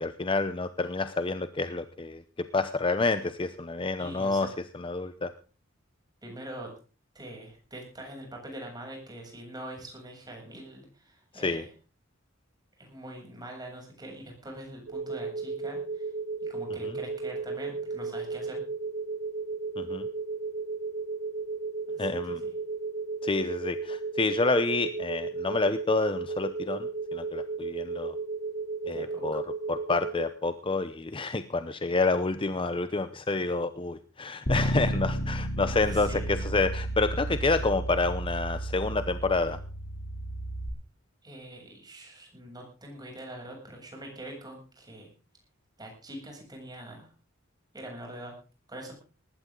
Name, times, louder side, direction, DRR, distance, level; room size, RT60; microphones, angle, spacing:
voice 1, 0.0-2.2 2.5-5.3 11.3-11.6 16.8-17.0 19.8-20.1 22.0-22.4 23.2-28.2 28.8-29.4 29.7-39.6, left 3 dB, 25° left, 11 dB, 0.7 m, -28 dB
voice 2, 4.0-4.5 6.2-6.7 7.1-11.6 12.8-16.1 16.4-18.6 21.9-22.5 28.9-29.2 35.9-36.2 41.2-45.1 45.8-47.1 47.7-48.3 48.7-48.9, right 1 dB, 20° right, 1 dB, 7.7 m, -43 dB
sound 1, 14.9-30.2, right 4 dB, 85° right, 2.5 m, -34 dB
Bass guitar, 34.5-40.7, right 1 dB, 55° left, 2.8 m, -32 dB
19.5 x 15.0 x 3.8 m, 0.36 s
head